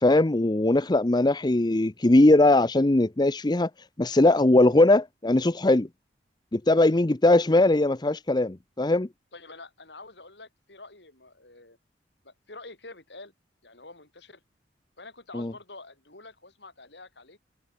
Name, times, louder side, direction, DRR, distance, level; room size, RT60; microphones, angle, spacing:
voice 1, 0.0-3.7 4.0-5.9 6.5-9.1 15.3-15.5, left 2 dB, 25° left, 0.6 m, -20 dB
voice 2, 9.3-11.8 12.2-13.3 13.6-14.4 15.0-17.4, left 3 dB, 70° left, 7.7 m, -47 dB
head